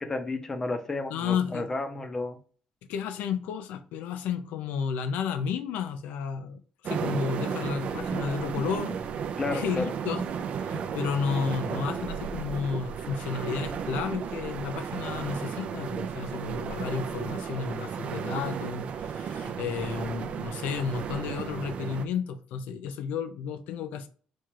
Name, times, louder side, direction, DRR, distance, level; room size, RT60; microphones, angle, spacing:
voice 1, 0.0-2.4 9.4-9.9, left 2 dB, 20° left, 0.7 m, -32 dB
voice 2, 1.1-1.7 2.9-9.0 9.5-10.2 10.6-24.1, left 6 dB, 85° left, 0.5 m, -32 dB
sound 1, 6.8-22.1, right 7 dB, 50° right, 0.4 m, -34 dB
4.4 x 2.4 x 4.6 m
cardioid pair, 145°, 3 cm